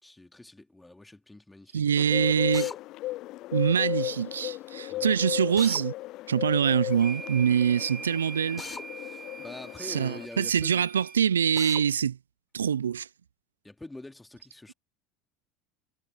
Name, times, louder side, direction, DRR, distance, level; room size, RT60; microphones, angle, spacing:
voice 1, 0.0-2.0 4.9-5.2 9.0-10.8 13.6-14.7, left 2 dB, 10° left, 2.7 m, -45 dB
voice 2, 1.7-2.7 3.5-5.9 6.3-8.6 9.9-12.2 12.5-13.1, right 8 dB, 90° right, 0.4 m, -24 dB
Bird, 2.0-10.3, left 17 dB, 55° left, 0.3 m, -35 dB
Drill, 2.5-2.8 5.6-5.8 8.6-8.9 11.6-11.8, left 5 dB, 25° left, 4.1 m, -39 dB
sound 1, 6.9-11.2, right 4 dB, 20° right, 1.5 m, -43 dB
hypercardioid pair, 75°, 0 cm